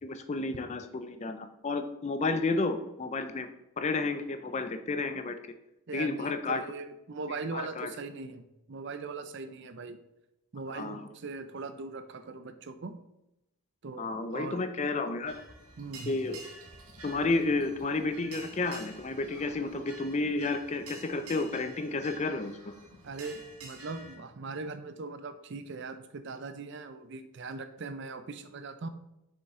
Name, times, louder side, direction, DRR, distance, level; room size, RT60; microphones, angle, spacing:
voice 1, 0.0-3.5 3.8-5.4 5.9-6.6 7.5-7.9 10.7-11.1 14.0-15.3 16.1-16.4 17.0-22.7, left 3 dB, 30° left, 9 dB, 0.4 m, -31 dB
voice 2, 5.9-8.4 8.7-10.0 10.5-13.0 13.8-14.7 15.8-16.2 23.0-28.9, right 3 dB, 50° right, 10 dB, 0.5 m, -40 dB
sound 1, 15.2-24.2, right 3 dB, 80° right, 1.4 m, -49 dB
6.3 x 5.3 x 3.6 m, 0.88 s
head